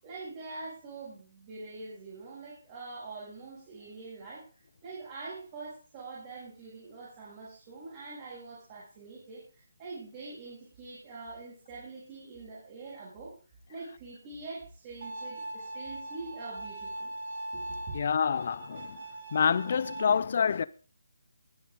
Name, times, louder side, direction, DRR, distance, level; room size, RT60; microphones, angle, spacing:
voice 1, 0.0-4.5 4.8-13.3 13.7-17.1 17.5-18.0, right 3 dB, 30° right, 7.3 m, -44 dB
Bowed string instrument, 15.0-20.0, right 2 dB, 50° right, 4.6 m, -41 dB
voice 2, 17.9-19.0 19.3-20.6, left 6 dB, 45° left, 0.7 m, -27 dB
22.5 x 8.1 x 4.0 m
figure-of-eight pair, 150°, 0 cm